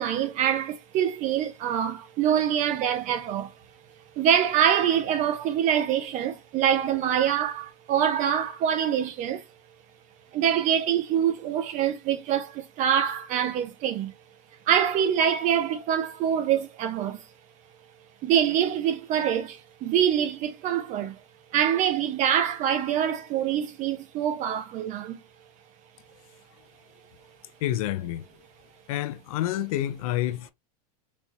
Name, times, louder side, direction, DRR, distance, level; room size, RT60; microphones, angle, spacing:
voice 1, 0.0-3.5 4.2-9.4 10.3-14.1 14.7-17.2 18.2-21.2 21.5-25.2, right 9 dB, 40° right, 0.9 m, -25 dB
voice 2, 27.6-28.3 28.9-30.5, left 13 dB, 65° left, 0.6 m, -28 dB
4.2 x 3.0 x 2.2 m
supercardioid pair, 125°, 20 cm